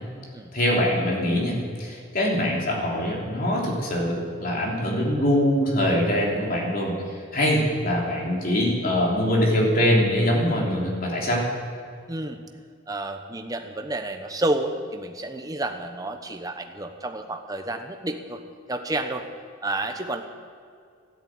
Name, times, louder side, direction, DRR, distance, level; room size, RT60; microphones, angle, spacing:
voice 1, 0.5-11.4, equal, 45° left, -2 dB, 3.4 m, -23 dB
voice 2, 12.1-12.4 12.9-18.4 18.7-19.3 19.6-20.2, right 2 dB, 15° right, 5 dB, 1.0 m, -30 dB
13.0 x 11.5 x 8.9 m, 2.2 s
head